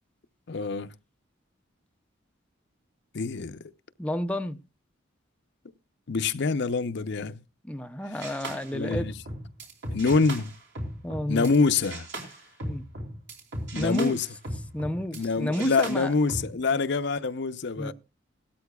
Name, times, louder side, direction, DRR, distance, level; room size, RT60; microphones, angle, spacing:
voice 1, 0.5-0.9 3.1-3.6 6.1-7.4 8.7-9.1 9.9-10.5 11.3-12.1 13.7-14.2 15.1-17.9, left 4 dB, 60° left, 0.6 m, -25 dB
voice 2, 4.0-4.6 7.6-9.1 11.0-11.5 12.6-12.8 13.7-14.2 14.7-16.2 16.7-16.8 17.8-17.9, equal, 5° left, 0.5 m, -31 dB
sound 1, 8.2-11.6 11.8-15.3 15.5-16.5, right 1 dB, 65° right, 3.4 m, -37 dB
17.0 x 13.0 x 2.3 m
head